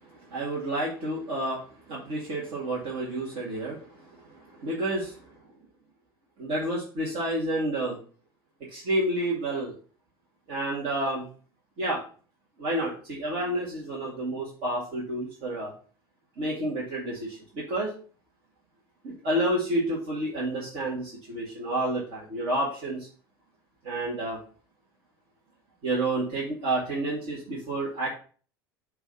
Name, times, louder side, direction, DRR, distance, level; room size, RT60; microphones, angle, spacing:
voice 1, 0.3-5.2 6.4-8.0 8.7-9.7 10.5-11.3 11.8-12.0 12.6-15.7 16.4-17.9 19.0-23.1 23.8-24.4 25.8-28.1, right 1 dB, 50° right, -6 dB, 2.3 m, -30 dB
6.8 x 3.2 x 5.6 m, 0.40 s
figure-of-eight pair, 75°, 12 cm